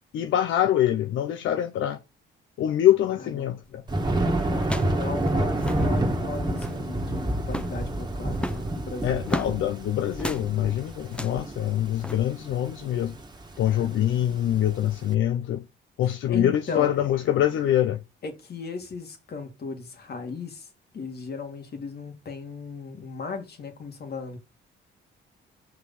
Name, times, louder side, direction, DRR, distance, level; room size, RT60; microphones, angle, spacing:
voice 1, 0.1-2.0 2.6-3.8 9.0-13.1 13.6-15.6 16.0-18.0, left 11 dB, 80° left, 0.7 m, -24 dB
voice 2, 3.2-3.8 4.2-9.2 13.7-14.7 16.0-17.0 18.2-20.7 20.9-24.4, left 4 dB, 55° left, 2.6 m, -37 dB
sound 1, 3.6-3.9 4.6-5.0 5.3-5.4 5.5-5.9 6.4-6.9 7.4-7.8 8.3-9.6 10.2-10.5 11.1-11.4 12.0-12.2, equal, 5° left, 0.9 m, -33 dB
Thunder, 3.9-15.0, right 1 dB, 20° right, 1.9 m, -29 dB
5.8 x 5.0 x 5.7 m
cardioid pair, 90°, 20 cm